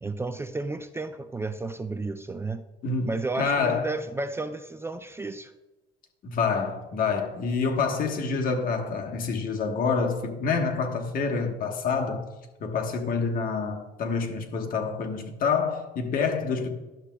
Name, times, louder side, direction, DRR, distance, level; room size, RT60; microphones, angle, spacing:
voice 1, 0.0-2.6 3.0-5.5, right 3 dB, 15° right, 0.4 m, -32 dB
voice 2, 2.8-3.9 6.2-12.2 12.6-16.7, left 5 dB, 55° left, 1.2 m, -27 dB
11.5 x 7.2 x 2.3 m
cardioid pair, 110°, 17 cm